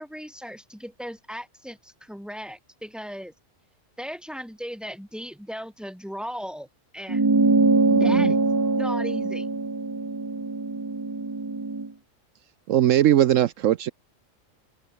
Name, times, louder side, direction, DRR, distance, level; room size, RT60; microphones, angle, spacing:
voice 1, 0.0-3.3 4.0-6.7 6.9-7.3 8.0-9.5, equal, ahead, 8.0 m, -37 dB
sound 1, 7.1-11.9, right 3 dB, 20° right, 0.8 m, -23 dB
voice 2, 7.9-8.3 12.7-13.9, right 12 dB, 75° right, 1.1 m, -20 dB
open air
omnidirectional pair, 1.3 m